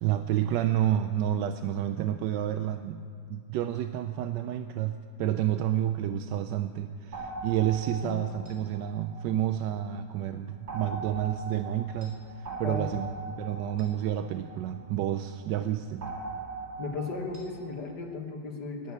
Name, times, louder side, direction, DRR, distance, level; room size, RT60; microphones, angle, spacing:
voice 1, 0.0-16.1, right 11 dB, 85° right, 9 dB, 1.2 m, -30 dB
sound 1, 7.1-9.9 10.7-15.2 16.0-17.8, right 3 dB, 40° right, 3.3 m, -41 dB
voice 2, 12.6-13.1 16.8-18.9, left 3 dB, 70° left, 2 dB, 2.1 m, -36 dB
14.0 x 10.0 x 9.6 m, 2.4 s
omnidirectional pair, 1.9 m